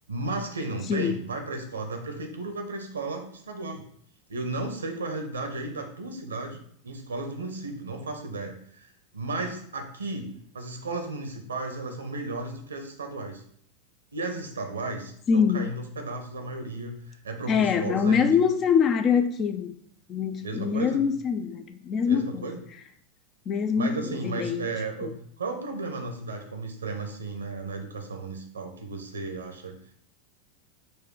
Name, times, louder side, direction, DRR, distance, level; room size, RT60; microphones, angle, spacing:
voice 1, 0.1-3.8 4.3-13.4 14.1-18.3 20.4-21.0 22.0-22.6 23.7-29.7, right 2 dB, 80° right, 5 dB, 0.7 m, -34 dB
voice 2, 15.3-15.7 17.5-19.8 20.1-22.5 23.5-24.7 25.0-25.1, left 6 dB, 35° left, 10 dB, 0.4 m, -24 dB
4.3 x 2.3 x 4.6 m, 0.63 s
figure-of-eight pair, 90°, 0 cm